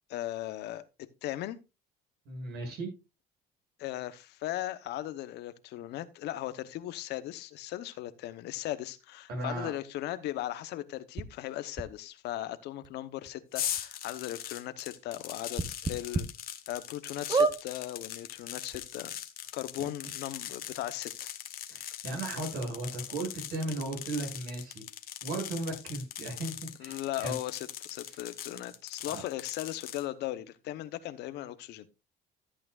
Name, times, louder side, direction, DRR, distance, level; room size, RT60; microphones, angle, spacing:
voice 1, 0.1-1.6 3.8-16.3 16.7-19.1 19.5-21.3 26.8-31.9, left 14 dB, 80° left, 0.9 m, -38 dB
voice 2, 2.3-2.9 9.3-9.7 19.8-19.9 21.7-24.8 25.2-26.5 26.8-27.4 29.1-29.2, right 2 dB, 80° right, 7.0 m, -36 dB
sound 1, 11.2-11.3 11.8-11.9 12.8-12.9 13.3-13.4 13.8-13.9 15.5-16.2 16.7-16.8 17.3-17.6 18.4-18.5 18.7-18.8, right 4 dB, 25° right, 1.1 m, -27 dB
sound 2, 13.5-30.0, left 11 dB, 60° left, 1.3 m, -41 dB
14.0 x 8.6 x 2.4 m
cardioid pair, 110°, 17 cm